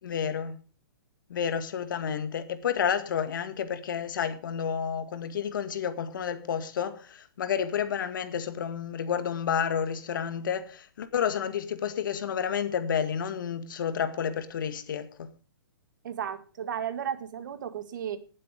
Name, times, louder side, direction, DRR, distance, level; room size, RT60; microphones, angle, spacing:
voice 1, 0.0-0.6 1.3-15.3, left 8 dB, 55° left, 1.9 m, -30 dB
voice 2, 16.0-18.2, right 9 dB, 55° right, 1.9 m, -34 dB
18.5 x 7.7 x 5.2 m
hypercardioid pair, 165°, 12 cm